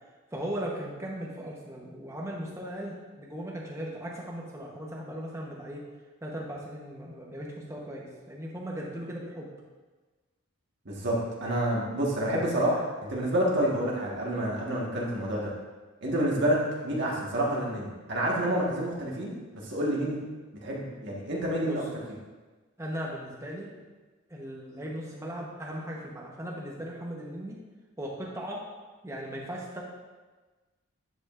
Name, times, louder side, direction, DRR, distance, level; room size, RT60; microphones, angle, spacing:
voice 1, 0.3-5.8 6.2-9.5 21.6-21.8 22.8-23.7 24.3-27.6 28.0-28.6 29.0-29.8, equal, 15° right, -3 dB, 1.0 m, -38 dB
voice 2, 10.8-15.5 16.0-19.3 19.6-20.2 20.6-21.8, right 1 dB, 55° right, -4 dB, 1.5 m, -28 dB
10.0 x 5.1 x 2.5 m, 1.3 s
head